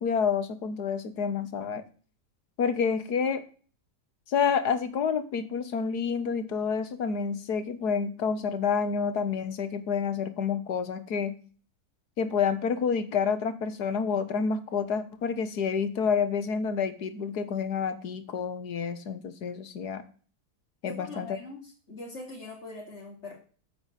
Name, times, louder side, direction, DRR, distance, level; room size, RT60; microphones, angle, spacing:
voice 1, 0.0-1.8 2.6-3.4 4.3-11.3 12.2-20.0 20.8-21.4, left 6 dB, 90° left, 11 dB, 1.9 m, -28 dB
voice 2, 20.8-23.4, left 2 dB, 45° left, -4 dB, 3.4 m, -42 dB
9.7 x 6.9 x 8.2 m, 0.40 s
omnidirectional pair, 1.7 m